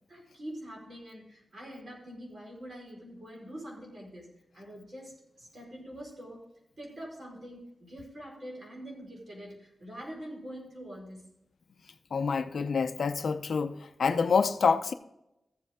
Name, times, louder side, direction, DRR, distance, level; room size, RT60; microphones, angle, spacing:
voice 1, 0.1-4.3 4.5-6.4 6.8-11.3, equal, 50° right, 4.6 m, -44 dB
voice 2, 12.1-14.9, left 5 dB, 65° left, 0.6 m, -27 dB
14.5 x 7.9 x 3.6 m
wide cardioid pair, 180°, 0 cm